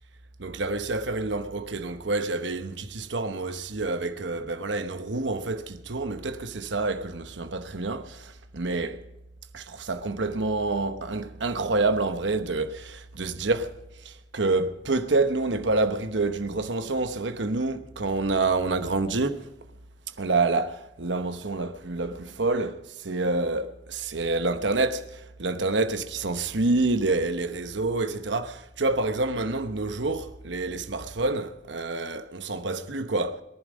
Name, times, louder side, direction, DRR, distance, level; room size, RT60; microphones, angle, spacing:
voice 1, 0.4-9.0 9.5-19.5 20.2-33.4, right 3 dB, 75° right, 1.0 m, -28 dB
22.5 x 11.0 x 5.2 m
head